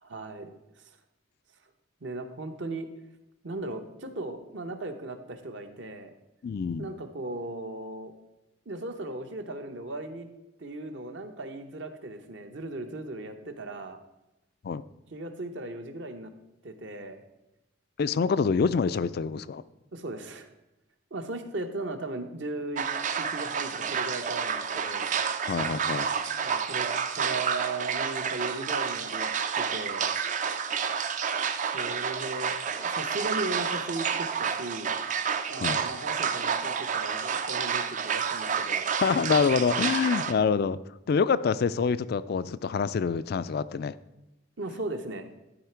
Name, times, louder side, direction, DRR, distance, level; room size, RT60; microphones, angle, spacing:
voice 1, 0.0-0.6 2.0-2.9 3.4-6.1 6.8-8.1 8.7-10.3 10.6-14.0 15.1-16.3 16.6-17.2 19.9-20.5 21.1-22.9 23.2-25.1 26.4-30.1 31.7-35.0 35.5-38.9 44.6-45.3, right 2 dB, 60° right, 6 dB, 0.9 m, -37 dB
voice 2, 6.4-6.9 14.6-14.8 18.0-19.6 25.5-26.1 35.6-35.8 39.0-40.8 41.1-44.0, left 5 dB, 50° left, 16 dB, 0.3 m, -26 dB
boleskine house flooded basement, 22.8-40.3, right 6 dB, 35° right, 0.4 m, -30 dB
12.0 x 4.9 x 4.5 m, 0.96 s
head